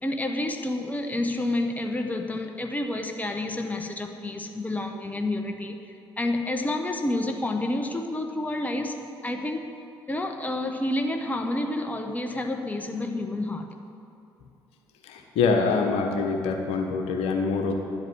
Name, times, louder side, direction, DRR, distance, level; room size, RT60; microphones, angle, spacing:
voice 1, 0.0-5.8 6.2-9.7 10.1-13.7, left 1 dB, 15° left, 5 dB, 1.1 m, -29 dB
voice 2, 15.1-17.7, left 4 dB, 60° left, 3 dB, 1.3 m, -25 dB
11.0 x 8.1 x 9.0 m, 2.7 s
figure-of-eight pair, 50°, 12 cm